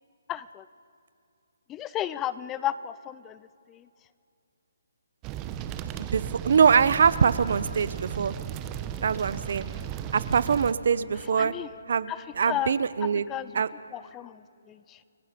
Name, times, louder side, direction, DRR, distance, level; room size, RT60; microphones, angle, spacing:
voice 1, 0.3-0.7 1.7-3.9 11.3-11.7 12.1-12.8 13.3-13.5 13.9-15.0, left 12 dB, 15° left, 16 dB, 0.4 m, -34 dB
sound 1, 5.2-10.7, right 9 dB, 20° right, 0.9 m, -35 dB
voice 2, 6.0-8.3 9.0-9.7 10.1-11.5 11.9-13.2 13.5-13.7, right 6 dB, 60° right, 17 dB, 0.7 m, -23 dB
29.5 x 17.5 x 5.1 m, 2.6 s
hypercardioid pair, 155°, 0 cm